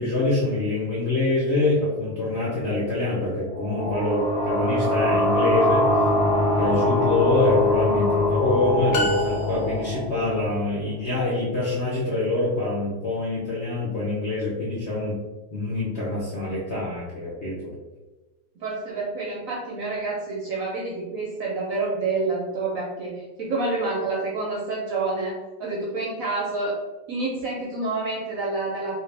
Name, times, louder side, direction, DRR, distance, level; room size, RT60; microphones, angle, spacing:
voice 1, 0.0-5.9 6.6-15.2 15.5-17.7, left 2 dB, 55° left, -6 dB, 0.7 m, -25 dB
sound 1, 3.5-10.9, left 1 dB, 25° left, 0.8 m, -23 dB
sound 2, 8.9-10.1, left 1 dB, 75° left, 1.1 m, -28 dB
voice 2, 18.6-26.7 27.1-29.0, right 3 dB, 65° right, -4 dB, 0.9 m, -28 dB
3.0 x 2.8 x 3.2 m, 1.2 s
omnidirectional pair, 2.0 m